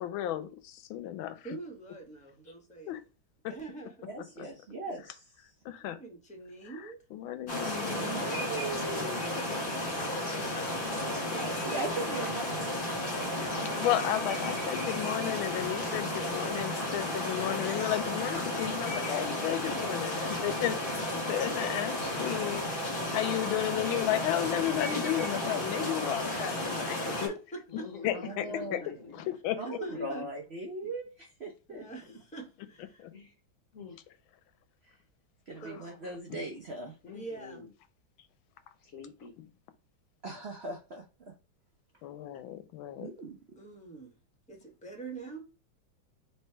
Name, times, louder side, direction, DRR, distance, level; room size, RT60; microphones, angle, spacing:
voice 1, 0.0-1.4 2.9-3.0 5.7-6.0 7.1-8.3 10.4-10.6 13.8-20.8 21.1-22.7 23.1-27.3 28.0-28.5 28.7-28.8 29.1-29.6 33.0-33.1 36.3-36.4 42.0-43.1, left 12 dB, 90° left, 1.4 m, -33 dB
voice 2, 1.4-2.9 3.5-4.1 5.8-7.0 10.8-11.6 27.1-28.6 29.6-30.3 31.7-33.1 35.6-35.9 37.0-37.6 43.6-44.2 44.5-45.4, right 3 dB, 5° left, 0.7 m, -44 dB
voice 3, 4.1-5.5 7.8-9.3 11.3-12.7 28.1-29.0 29.6-31.8 34.9-35.0 35.5-36.9 40.2-41.0 43.0-43.4, right 2 dB, 80° right, 0.5 m, -39 dB
sound 1, 7.5-27.3, left 1 dB, 30° left, 1.5 m, -33 dB
voice 4, 8.8-10.1 15.8-15.9 27.7-29.3 29.9-30.3 30.8-30.9 33.1-33.3 33.7-34.0 37.0-37.7 38.8-39.3, left 6 dB, 55° left, 0.9 m, -46 dB
3.3 x 3.2 x 4.4 m
omnidirectional pair, 2.2 m